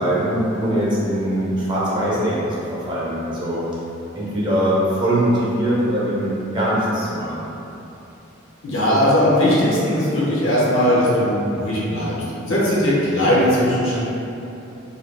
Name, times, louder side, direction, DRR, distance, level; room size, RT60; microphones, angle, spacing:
voice 1, 0.0-3.6 4.1-7.5, right 1 dB, 25° right, -8 dB, 0.5 m, -22 dB
voice 2, 8.6-12.1 12.4-14.0, left 1 dB, 70° left, -8 dB, 0.6 m, -18 dB
2.4 x 2.3 x 3.2 m, 2.9 s
head